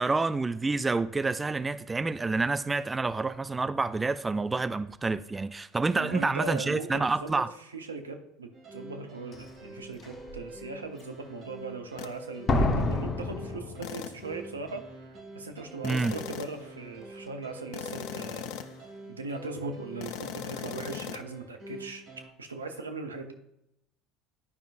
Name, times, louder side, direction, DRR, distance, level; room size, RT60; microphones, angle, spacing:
voice 1, 0.0-7.5 15.8-16.1, right 3 dB, 20° right, 0.4 m, -28 dB
voice 2, 5.9-18.5 19.1-22.0 22.4-23.3, right 3 dB, 85° right, 0.7 m, -39 dB
sound 1, 8.5-22.3, right 1 dB, 45° right, 2.7 m, -46 dB
Slam, 9.3-9.4 10.0-10.4 12.5-14.4 14.6-14.7, left 2 dB, 35° left, 0.8 m, -28 dB
sound 2, 12.0-12.2 13.8-14.3 15.8-16.7 17.7-18.9 20.0-21.2, left 10 dB, 60° left, 0.4 m, -39 dB
11.0 x 5.2 x 2.5 m
figure-of-eight pair, 65°, 0 cm